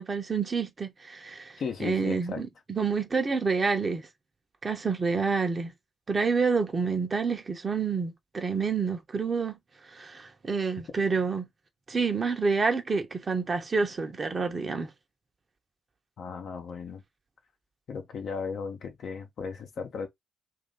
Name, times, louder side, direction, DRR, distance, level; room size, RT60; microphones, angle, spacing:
voice 1, 0.0-4.0 4.6-5.7 6.1-9.6 9.9-11.5 11.9-14.9, right 4 dB, 35° right, 1.0 m, -28 dB
voice 2, 1.6-2.5 16.2-17.0 17.9-20.1, left 5 dB, 55° left, 0.9 m, -36 dB
3.0 x 2.7 x 3.9 m
figure-of-eight pair, 45°, 0 cm